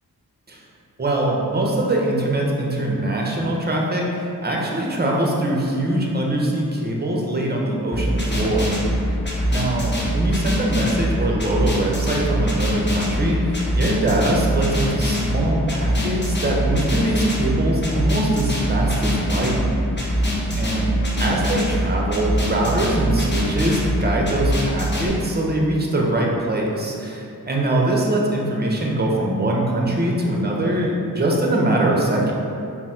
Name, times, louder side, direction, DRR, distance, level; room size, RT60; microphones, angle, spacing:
voice 1, 1.0-9.2 9.5-19.6 20.0-20.2 20.6-32.3, right 1 dB, 25° right, -2 dB, 0.8 m, -22 dB
sound 1, 7.9-25.1, equal, 30° left, 0.9 m, -23 dB
4.0 x 2.1 x 4.2 m, 2.6 s
cardioid pair, 40°, 37 cm